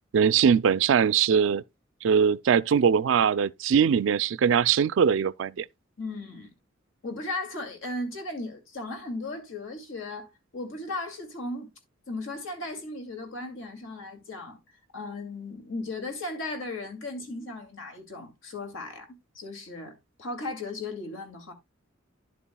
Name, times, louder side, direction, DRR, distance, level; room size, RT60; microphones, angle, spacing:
voice 1, 0.1-1.6 2.0-5.6, right 7 dB, 70° right, 0.4 m, -21 dB
voice 2, 6.0-6.5 7.0-10.3 10.5-11.7 12.1-14.6 14.9-21.5, left 2 dB, 85° left, 2.4 m, -36 dB
11.0 x 6.9 x 2.2 m
head